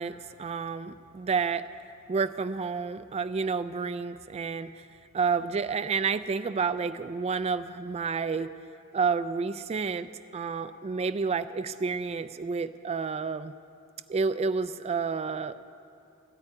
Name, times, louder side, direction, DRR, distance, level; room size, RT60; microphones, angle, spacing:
voice 1, 0.0-1.7 2.1-4.8 5.1-8.5 8.9-13.5 14.1-15.6, right 5 dB, 30° right, 13 dB, 0.3 m, -30 dB
14.0 x 9.0 x 9.6 m, 2.6 s
head